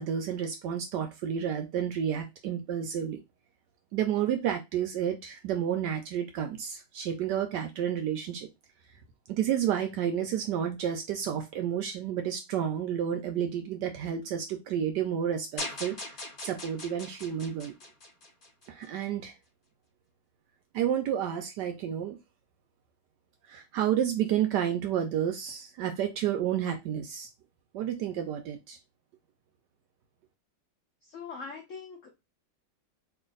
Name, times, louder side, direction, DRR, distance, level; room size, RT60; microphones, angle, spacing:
voice 1, 0.0-3.2 3.9-8.5 9.3-16.0 16.4-17.7 18.7-19.3 20.7-22.2 23.5-27.3 27.7-28.8, right 9 dB, 75° right, 1.0 m, -30 dB
sound 1, 15.6-18.9, left 2 dB, 40° left, 0.7 m, -40 dB
voice 2, 31.0-32.1, left 5 dB, 80° left, 0.6 m, -42 dB
3.2 x 2.6 x 3.8 m
omnidirectional pair, 2.2 m